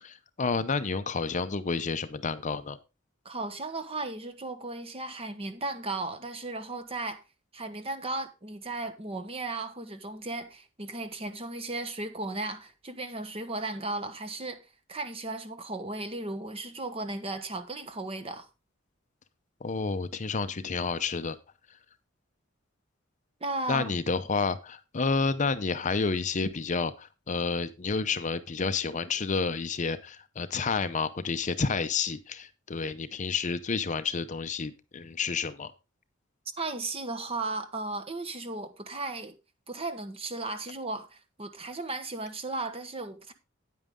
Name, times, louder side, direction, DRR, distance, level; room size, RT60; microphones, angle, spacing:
voice 1, 0.0-2.8 19.6-21.4 23.7-35.7, left 4 dB, 40° left, 0.6 m, -30 dB
voice 2, 3.2-7.2 7.5-14.6 14.9-18.5 23.4-23.9 36.6-39.3 39.7-43.3, right 2 dB, 30° right, 1.1 m, -35 dB
9.4 x 9.0 x 3.6 m
head